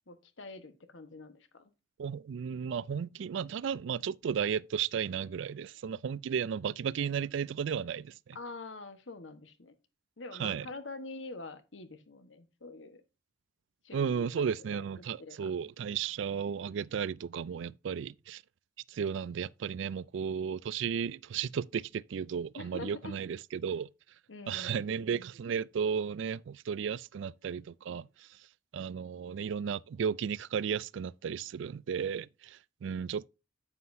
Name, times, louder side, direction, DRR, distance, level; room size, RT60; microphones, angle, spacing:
voice 1, 0.1-1.7 8.3-9.8 10.2-13.0 13.8-14.8 15.2-15.5 22.5-23.1 24.3-24.9, left 3 dB, 75° left, 1.3 m, -45 dB
voice 2, 2.0-8.4 10.4-10.7 13.9-18.4 18.9-23.9 24.5-28.4 28.7-33.3, right 7 dB, 70° right, 0.3 m, -34 dB
9.6 x 7.5 x 2.7 m
head